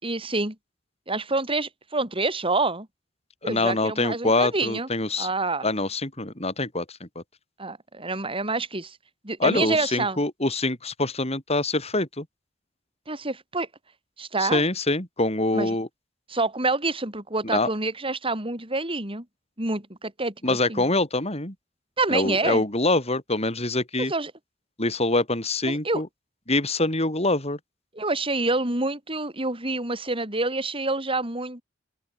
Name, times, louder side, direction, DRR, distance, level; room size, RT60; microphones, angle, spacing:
voice 1, 0.0-0.6 1.1-2.9 3.4-4.9 5.2-5.7 7.6-9.0 9.2-10.2 13.1-13.7 14.2-14.7 15.5-15.8 16.3-19.3 19.6-20.8 22.0-22.6 24.1-24.3 25.7-26.0 28.0-31.6, right 3 dB, 30° right, 7.0 m, -27 dB
voice 2, 3.4-5.3 5.6-7.2 9.4-12.3 14.4-15.9 17.4-17.7 20.4-21.5 22.1-24.1 24.8-26.1 26.5-27.6, left 2 dB, 35° left, 7.2 m, -25 dB
open air
head